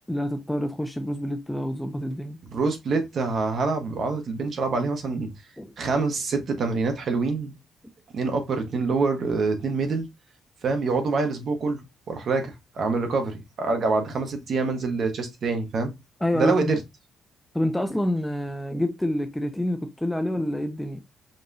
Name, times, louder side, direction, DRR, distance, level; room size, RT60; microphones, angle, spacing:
voice 1, 0.1-2.4 5.6-5.7 16.2-16.8 17.5-21.0, left 1 dB, 5° left, 0.4 m, -27 dB
voice 2, 2.5-5.3 5.8-7.5 8.1-10.1 10.6-11.8 12.1-15.9 16.3-16.8, right 4 dB, 40° right, 1.0 m, -26 dB
5.3 x 2.8 x 2.6 m
cardioid pair, 175°, 0 cm